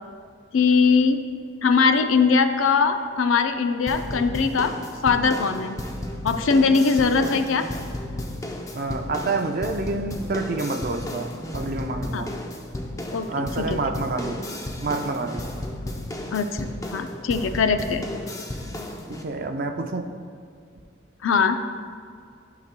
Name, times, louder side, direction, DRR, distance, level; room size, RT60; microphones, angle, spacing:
voice 1, 0.5-1.2 1.6-4.7 5.0-5.8 6.2-7.7 12.1-12.2 13.1-13.8 16.3-18.1 21.2-21.6, left 5 dB, 85° left, 9 dB, 0.5 m, -21 dB
sound 1, 3.9-19.2, left 1 dB, 15° left, 0.5 m, -34 dB
voice 2, 8.7-12.3 13.3-14.4 14.8-15.4 19.1-20.1, right 3 dB, 45° right, 5 dB, 0.5 m, -28 dB
12.0 x 5.9 x 2.2 m, 2.2 s
head